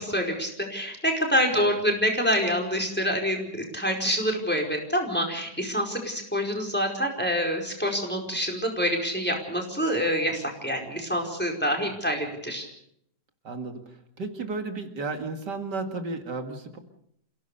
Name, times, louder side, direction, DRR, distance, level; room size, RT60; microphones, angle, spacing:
voice 1, 0.0-12.6, equal, 5° left, 2 dB, 4.8 m, -26 dB
voice 2, 1.5-1.8 13.4-16.8, right 3 dB, 75° right, 5 dB, 2.6 m, -34 dB
28.0 x 17.0 x 6.8 m, 0.72 s
omnidirectional pair, 1.8 m